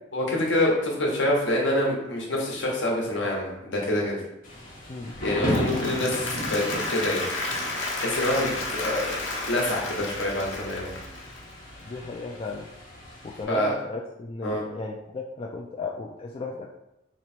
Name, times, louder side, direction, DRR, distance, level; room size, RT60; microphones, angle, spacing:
voice 1, 0.1-4.2 5.2-7.2 8.0-9.2 9.4-10.9 13.5-13.8 14.4-14.6, left 1 dB, 70° left, -2 dB, 1.1 m, -26 dB
Thunder / Rain, 4.4-13.4, equal, 50° left, 1.3 m, -36 dB
Applause, 5.3-11.5, left 2 dB, 90° left, 0.8 m, -32 dB
voice 2, 11.8-12.7 13.2-16.7, left 3 dB, 30° left, 0 dB, 0.3 m, -35 dB
3.1 x 3.1 x 4.3 m, 0.89 s
head